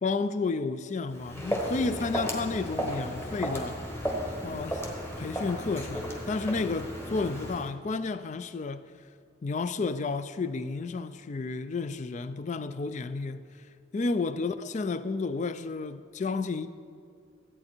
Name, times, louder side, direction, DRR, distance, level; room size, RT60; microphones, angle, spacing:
voice 1, 0.0-3.8 4.4-4.8 5.2-8.9 9.4-13.4 13.9-16.7, left 3 dB, 35° left, 0.4 m, -31 dB
Walk footsteps, 1.1-7.7, equal, 10° left, 1.2 m, -34 dB
13.5 x 8.6 x 4.5 m
head